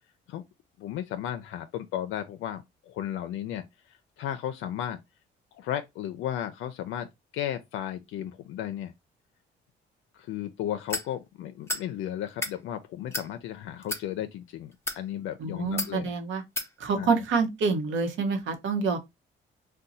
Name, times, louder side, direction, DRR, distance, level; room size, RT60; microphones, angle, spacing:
voice 1, 0.8-5.0 5.5-7.1 7.3-8.9 10.2-16.1 16.9-17.2, left 11 dB, 80° left, 0.4 m, -34 dB
sound 1, 10.9-11.1 11.7-11.9 12.3-12.6 13.1-13.3 13.8-14.0 14.7-15.0 15.8-15.9 16.6-16.7, left 2 dB, 10° left, 0.7 m, -31 dB
voice 2, 15.4-16.4 16.8-19.0, right 4 dB, 75° right, 0.9 m, -27 dB
2.6 x 2.2 x 3.9 m
cardioid pair, 90°, 20 cm